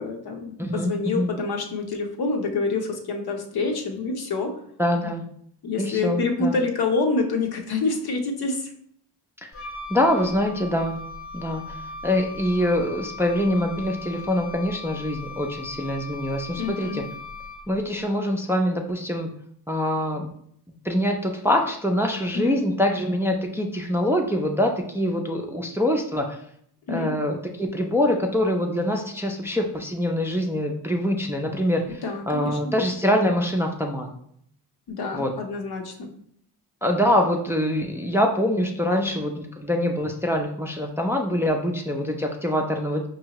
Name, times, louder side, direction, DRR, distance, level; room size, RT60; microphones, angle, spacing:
voice 1, 0.0-4.5 5.6-8.7 16.6-17.0 22.3-22.6 26.9-27.2 32.0-32.7 34.9-36.1, left 3 dB, 65° left, 3 dB, 0.8 m, -27 dB
voice 2, 0.6-1.3 4.8-5.3 5.8-6.6 9.9-11.0 11.3-11.6 12.0-17.0 17.7-19.3 19.7-20.3 20.8-26.3 26.9-34.1 35.1-35.3 36.8-43.1, left 1 dB, 5° right, 2 dB, 0.4 m, -24 dB
Wind instrument woodwind instrument, 9.5-17.8, left 4 dB, 30° left, 0.7 m, -39 dB
4.7 x 2.7 x 2.9 m, 0.66 s
cardioid pair, 75°, 41 cm